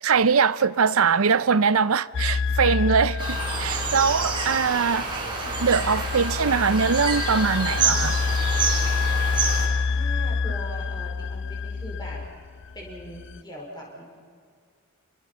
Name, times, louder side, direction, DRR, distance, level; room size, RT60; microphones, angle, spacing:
voice 1, 0.0-5.1 5.6-8.2, right 5 dB, 80° right, 0.6 m, -22 dB
sound 1, 2.1-13.4, left 5 dB, 55° left, 0.5 m, -28 dB
sound 2, 3.2-9.7, right 4 dB, 20° right, 4.9 m, -28 dB
voice 2, 9.9-12.2 12.7-14.2, equal, 20° left, 5.2 m, -41 dB
29.5 x 23.0 x 5.7 m
head